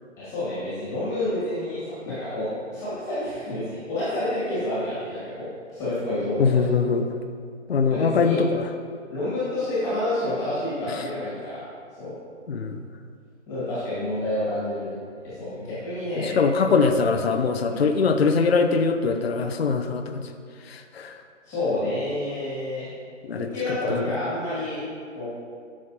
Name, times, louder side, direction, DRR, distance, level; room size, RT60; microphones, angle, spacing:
voice 1, 0.2-6.6 7.9-8.4 9.1-11.6 12.0-12.1 13.5-14.9 15.2-16.4 17.7-17.8 21.4-22.9 23.3-24.8 25.1-25.2, left 1 dB, 10° left, -11 dB, 1.9 m, -29 dB
voice 2, 6.4-7.1 7.7-8.7 12.5-12.9 16.2-20.2 20.7-21.2 23.2-23.5, left 4 dB, 50° left, 6 dB, 0.6 m, -22 dB
12.0 x 6.3 x 2.8 m, 2.1 s
figure-of-eight pair, 160°, 39 cm